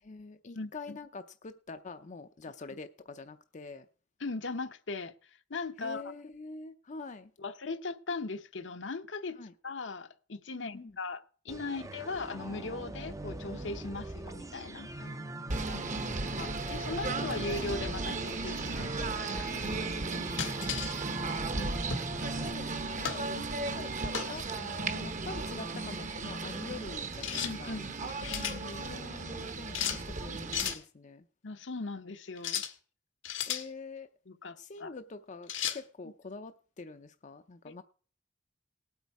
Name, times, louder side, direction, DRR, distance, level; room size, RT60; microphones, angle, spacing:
voice 1, 0.0-3.9 5.8-7.3 9.3-9.5 10.5-11.0 15.0-16.2 19.5-20.7 22.1-27.8 28.7-31.2 33.5-34.1 34.6-37.8, left 3 dB, 40° left, 0.6 m, -46 dB
voice 2, 0.5-1.0 4.2-5.1 5.5-6.0 7.4-9.4 9.6-15.1 15.7-15.8 16.4-19.5 21.3-21.9 23.3-23.4 27.4-27.8 28.2-29.0 31.4-32.6 34.3-34.9 37.7-37.8, left 3 dB, 70° left, 0.9 m, -39 dB
sound 1, 11.5-22.5, right 1 dB, 15° right, 0.6 m, -42 dB
Singing / Bird, 15.5-30.7, right 3 dB, 40° right, 1.0 m, -36 dB
sound 2, 20.4-21.0 21.9-22.1 23.0-23.3 24.1-24.4 27.2-27.5 28.0-28.6 29.7-30.0 30.5-30.8 32.4-32.7 33.2-33.7 35.5-35.8, left 8 dB, 90° left, 1.6 m, -34 dB
18.5 x 8.2 x 4.7 m
head